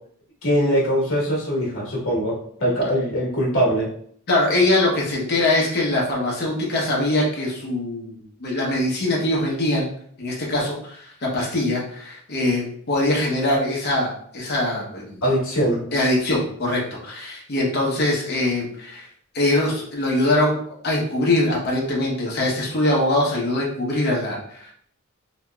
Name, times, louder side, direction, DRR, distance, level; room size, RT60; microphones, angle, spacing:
voice 1, 0.4-2.3 2.6-3.9 15.2-15.8, equal, 70° left, -5 dB, 1.1 m, -21 dB
voice 2, 4.3-9.9 10.2-15.2 15.9-19.1 19.3-24.7, left 1 dB, 50° left, -3 dB, 0.8 m, -22 dB
2.9 x 2.8 x 2.3 m, 0.62 s
head